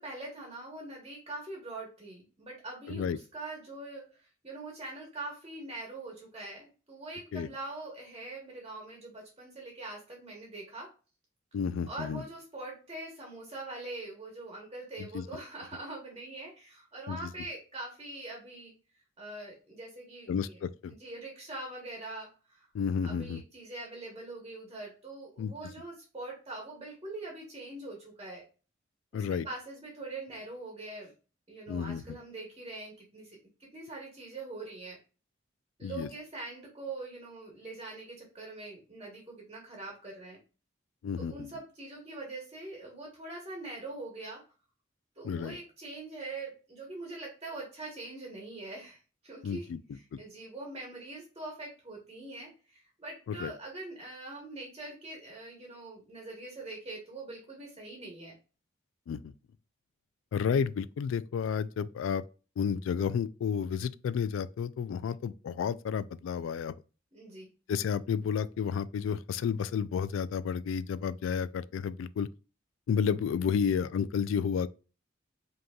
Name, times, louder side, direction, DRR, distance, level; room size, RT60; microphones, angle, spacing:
voice 1, 0.0-10.9 11.9-18.7 19.2-20.6 21.0-22.7 23.0-28.4 29.1-31.1 31.5-35.0 35.8-40.4 41.2-44.4 45.2-49.7 49.9-58.4 67.1-67.5, right 2 dB, 25° right, 1.2 m, -43 dB
voice 2, 11.5-12.2 15.0-15.3 17.1-17.3 20.3-20.9 22.7-23.4 25.4-25.5 29.1-29.5 31.7-32.0 35.8-36.1 41.0-41.5 45.2-45.6 49.4-49.8 50.1-50.2 53.3-53.5 59.1-59.3 60.3-62.2 62.6-66.7 67.7-72.3 72.9-74.7, left 7 dB, 85° left, 0.3 m, -31 dB
5.2 x 2.9 x 2.3 m
head